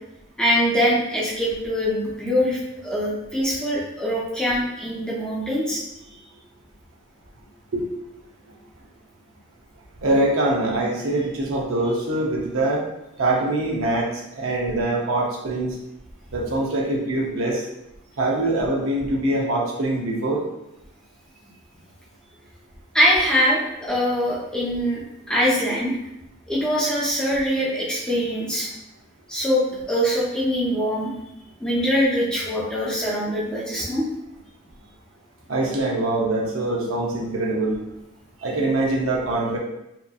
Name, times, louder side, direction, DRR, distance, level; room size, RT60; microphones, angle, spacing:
voice 1, 0.4-5.8 22.9-25.0 25.3-26.0 26.5-28.7 29.3-31.1 31.6-34.0, equal, 5° left, -6 dB, 0.6 m, -23 dB
voice 2, 10.0-12.8 13.2-14.1 14.3-15.7 16.3-17.7 18.2-20.4 35.5-37.8 38.4-39.6, right 2 dB, 80° right, -1 dB, 0.6 m, -23 dB
2.8 x 2.5 x 2.3 m, 0.87 s
head